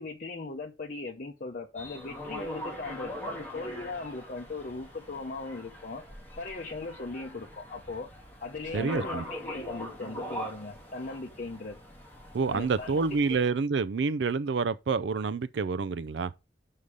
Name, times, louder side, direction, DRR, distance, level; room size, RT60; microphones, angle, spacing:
voice 1, 0.0-6.0 6.4-8.1 8.4-11.8 12.5-13.4, left 3 dB, 50° left, 0.8 m, -38 dB
sound 1, 1.8-13.5, equal, 10° left, 2.5 m, -42 dB
voice 2, 8.7-9.2 12.3-16.3, right 4 dB, 75° right, 0.4 m, -28 dB
6.6 x 5.5 x 4.8 m
head